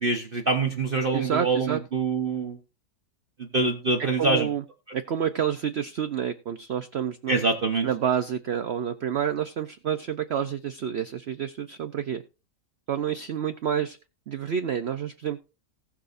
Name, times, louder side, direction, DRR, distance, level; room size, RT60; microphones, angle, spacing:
voice 1, 0.0-2.6 3.4-4.5 7.3-7.9, right 3 dB, 35° right, 2 dB, 1.1 m, -25 dB
voice 2, 1.1-1.8 4.0-4.6 4.9-7.4 7.8-12.2 12.9-14.0 14.3-15.4, right 8 dB, 65° right, 9 dB, 0.6 m, -29 dB
19.0 x 6.3 x 2.6 m, 0.32 s
omnidirectional pair, 1.8 m